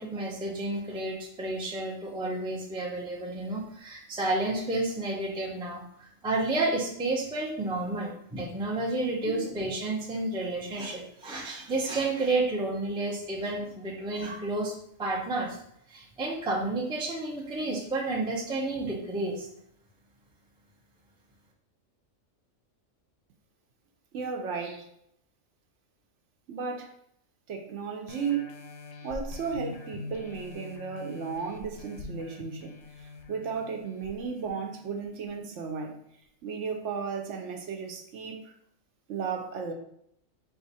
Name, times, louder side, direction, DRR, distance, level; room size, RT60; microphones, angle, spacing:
voice 1, 0.0-14.7 15.0-15.6 15.9-19.5, right 2 dB, 5° right, -2 dB, 0.4 m, -31 dB
voice 2, 24.1-24.9 26.5-27.0 27.5-28.5 29.0-36.0 36.4-38.5 39.1-39.7, right 5 dB, 65° right, 3 dB, 0.9 m, -34 dB
sound 1, 28.1-35.3 35.8-35.9, left 3 dB, 75° left, 0.9 m, -44 dB
4.1 x 2.4 x 4.0 m, 0.71 s
omnidirectional pair, 1.4 m